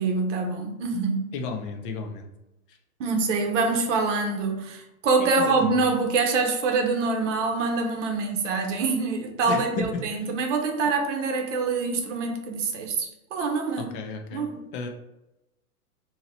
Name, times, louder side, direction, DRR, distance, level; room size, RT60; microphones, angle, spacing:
voice 1, 0.0-1.3 3.0-13.9 14.3-14.6, right 4 dB, 55° right, 3 dB, 0.8 m, -25 dB
voice 2, 1.3-2.3 5.2-5.8 9.4-9.9 10.1-10.3 13.8-14.4 14.7-14.9, left 4 dB, 35° left, 4 dB, 0.5 m, -33 dB
2.8 x 2.8 x 4.0 m, 0.94 s
hypercardioid pair, 135°, 44 cm